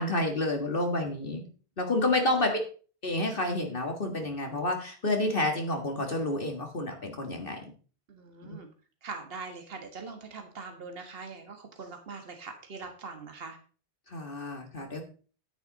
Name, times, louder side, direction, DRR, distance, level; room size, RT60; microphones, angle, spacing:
voice 1, 0.0-1.4 1.8-2.6 3.0-7.7 8.5-8.6 14.1-15.0, left 1 dB, 55° left, 3 dB, 1.9 m, -29 dB
voice 2, 2.0-2.6 8.1-8.7 9.0-13.6, right 4 dB, 60° right, 5 dB, 1.8 m, -42 dB
10.5 x 9.6 x 4.0 m, 0.39 s
omnidirectional pair, 1.1 m